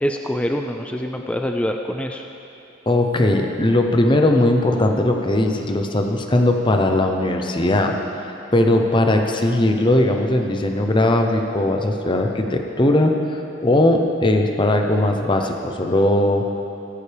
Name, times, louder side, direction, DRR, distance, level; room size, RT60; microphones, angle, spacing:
voice 1, 0.0-2.2, equal, 5° left, 3 dB, 0.4 m, -25 dB
voice 2, 2.9-7.9 8.5-16.4, left 1 dB, 25° left, 4 dB, 0.8 m, -19 dB
16.5 x 13.5 x 3.5 m, 2.9 s
head